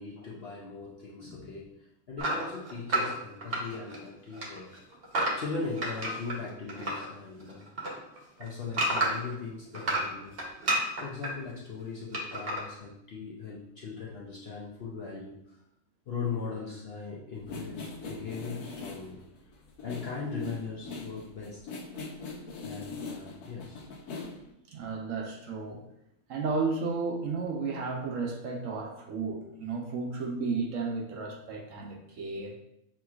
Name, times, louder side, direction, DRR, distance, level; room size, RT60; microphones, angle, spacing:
voice 1, 0.0-4.8 5.4-7.7 8.1-10.5 11.0-15.6 16.1-19.2 19.8-21.7 22.6-23.9, left 4 dB, 60° left, -4 dB, 0.7 m, -39 dB
sound 1, 2.2-4.1 4.3-7.1 7.4-9.3 9.7-11.3 12.1-12.6, right 1 dB, 45° right, 1.0 m, -30 dB
sound 2, 17.4-24.5, left 3 dB, 80° left, 1.3 m, -41 dB
voice 2, 24.7-25.8 26.3-32.6, right 4 dB, 65° right, 1 dB, 0.9 m, -33 dB
6.0 x 2.9 x 2.4 m, 0.81 s
omnidirectional pair, 1.6 m